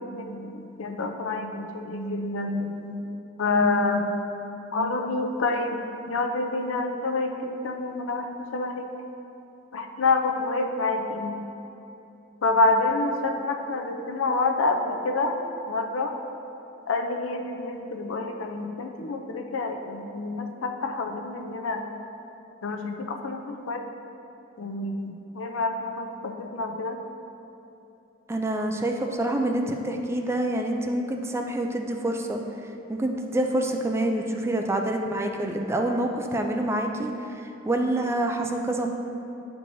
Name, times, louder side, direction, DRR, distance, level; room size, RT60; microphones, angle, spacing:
voice 1, 0.0-3.1 3.4-4.3 4.7-8.9 9.7-11.3 12.4-15.4 15.7-16.1 16.9-21.9 22.6-23.9 24.6-27.0, left 3 dB, 75° left, 4 dB, 0.5 m, -27 dB
voice 2, 28.3-32.4 32.9-38.9, right 1 dB, 15° right, 3 dB, 0.3 m, -27 dB
9.2 x 4.6 x 2.6 m, 3.0 s
head